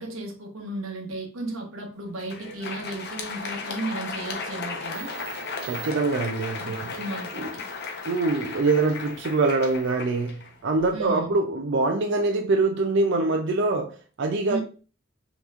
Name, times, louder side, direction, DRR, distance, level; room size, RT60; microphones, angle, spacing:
voice 1, 0.0-5.1 6.6-7.6 10.9-11.3 14.5-14.6, right 2 dB, 80° right, 1.1 m, -34 dB
Crowd, 2.1-11.0, left 4 dB, 55° left, 0.8 m, -36 dB
sound 1, 4.9-9.9, right 5 dB, 10° right, 1.3 m, -48 dB
voice 2, 5.6-6.9 7.3-7.5 8.0-14.6, right 3 dB, 60° right, 0.4 m, -24 dB
5.4 x 3.0 x 2.4 m
head